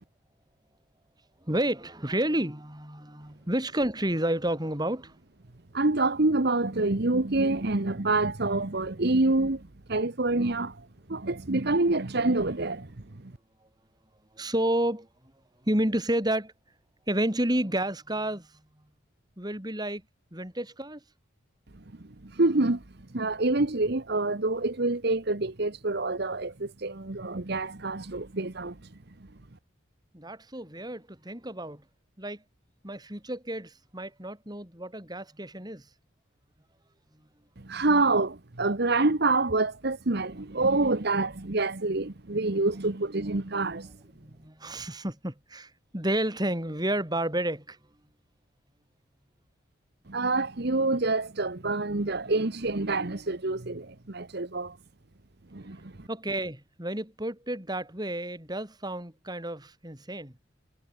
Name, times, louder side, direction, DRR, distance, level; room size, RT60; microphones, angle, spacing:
voice 1, 1.4-5.1 14.4-15.1 15.6-16.5 17.1-18.5 19.4-20.0 20.3-21.0 30.1-31.8 32.2-32.4 32.8-35.8 44.2-47.8 56.1-60.3, right 1 dB, 20° right, 3.9 m, -30 dB
voice 2, 5.7-13.3 22.0-22.8 23.1-28.8 37.6-43.9 50.1-54.8 55.5-56.1, right 2 dB, 50° right, 1.2 m, -27 dB
head